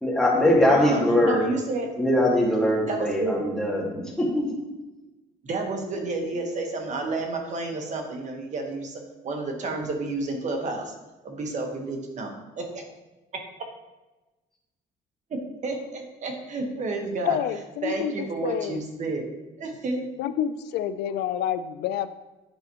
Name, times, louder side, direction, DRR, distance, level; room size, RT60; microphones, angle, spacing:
voice 1, 0.0-1.5 2.0-4.5, left 1 dB, 5° left, -3 dB, 1.9 m, -22 dB
voice 2, 0.7-1.9 2.9-3.4 5.4-10.9 11.2-12.8 15.3-17.4 17.8-19.3 19.6-20.0, right 3 dB, 45° right, 3 dB, 1.3 m, -30 dB
voice 3, 17.2-18.8 20.2-22.1, left 10 dB, 80° left, 12 dB, 0.4 m, -28 dB
8.7 x 5.9 x 3.0 m, 1.1 s
cardioid pair, 110°, 17 cm